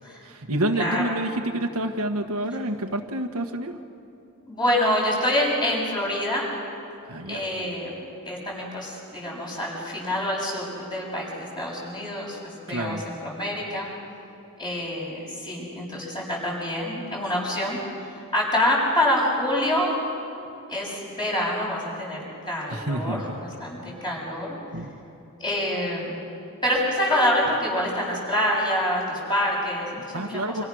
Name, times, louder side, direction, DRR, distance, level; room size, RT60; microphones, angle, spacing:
voice 1, 0.2-3.8 7.1-7.4 12.7-13.0 22.7-23.2 24.7-24.9 30.1-30.6, right 1 dB, 75° right, 4 dB, 1.6 m, -28 dB
voice 2, 0.7-1.1 4.5-6.5 7.3-8.0 8.3-12.4 12.7-13.9 14.6-17.8 18.3-20.0 20.7-22.2 22.5-24.6 25.4-26.1 26.6-30.4, left 1 dB, 20° left, -4 dB, 7.6 m, -26 dB
29.5 x 27.0 x 6.4 m, 2.8 s
head